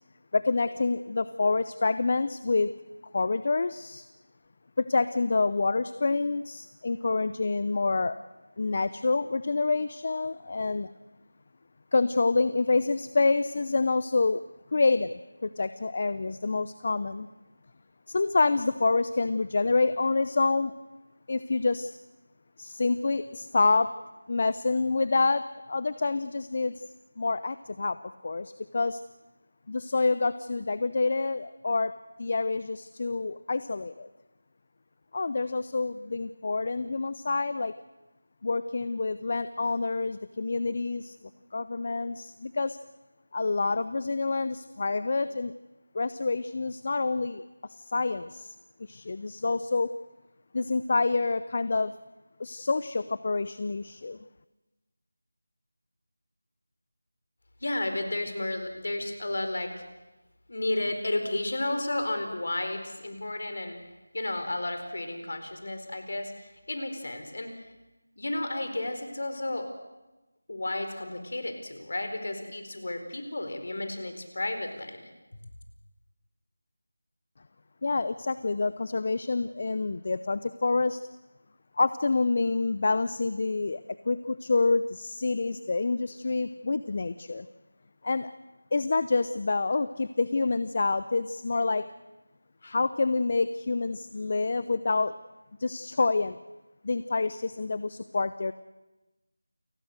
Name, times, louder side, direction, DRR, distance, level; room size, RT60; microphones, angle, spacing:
voice 1, 0.3-2.7 3.1-4.1 4.8-8.2 8.6-10.9 11.9-14.4 14.7-17.3 18.1-20.7 21.3-22.0 22.6-23.9 24.3-26.8 27.2-29.0 29.7-31.9 32.2-34.1 35.1-37.7 38.4-41.2 41.5-42.8 43.3-45.5 45.9-47.4 47.8-48.5 48.9-49.9 50.5-51.9 52.4-54.2 77.8-81.0 81.8-83.8 84.1-87.5 88.0-88.3 88.7-91.8 92.6-95.1 95.6-96.4 96.8-98.5, left 3 dB, 40° left, 14 dB, 0.7 m, -27 dB
voice 2, 57.6-59.7 60.5-63.8 64.1-67.7 68.2-69.7 70.5-75.1, left 2 dB, 60° left, 7 dB, 4.3 m, -32 dB
29.0 x 19.0 x 6.6 m, 1.1 s
figure-of-eight pair, 165°, 0 cm